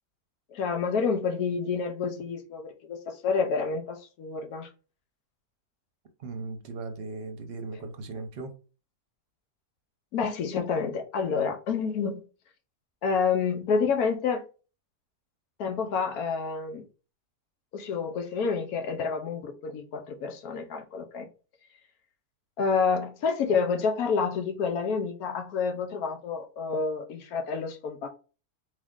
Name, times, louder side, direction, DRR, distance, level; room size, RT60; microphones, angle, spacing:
voice 1, 0.5-4.7 10.1-12.3 13.0-14.4 15.6-16.8 17.7-21.3 22.6-28.1, left 5 dB, 85° left, 1.3 m, -28 dB
voice 2, 6.2-8.5, right 3 dB, 50° right, 0.8 m, -37 dB
3.7 x 3.2 x 3.6 m
omnidirectional pair, 1.5 m